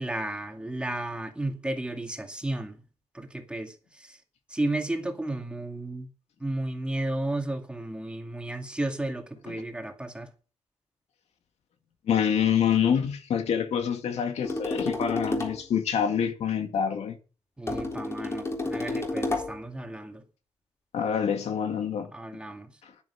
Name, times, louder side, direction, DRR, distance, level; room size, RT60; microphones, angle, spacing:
voice 1, 0.0-2.8 3.1-4.2 4.5-6.1 6.4-10.3 17.6-20.2 22.1-22.8, right 1 dB, 10° right, 2.3 m, -33 dB
voice 2, 12.1-17.2 20.9-22.1 22.8-22.9, left 8 dB, 80° left, 2.2 m, -26 dB
sound 1, 14.4-15.7 17.7-19.6, left 2 dB, 25° left, 3.8 m, -30 dB
11.0 x 10.5 x 4.9 m
wide cardioid pair, 135°, 11 cm